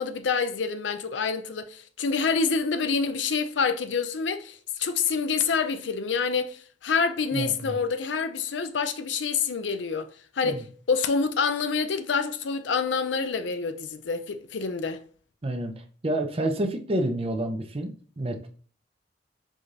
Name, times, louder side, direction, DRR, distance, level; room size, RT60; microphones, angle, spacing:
voice 1, 0.0-10.1 10.4-15.0, left 5 dB, 85° left, 0.5 m, -27 dB
voice 2, 7.3-7.7 10.4-10.6 15.4-15.7 16.0-18.5, right 1 dB, 30° right, 0.6 m, -29 dB
4.8 x 4.1 x 2.5 m
head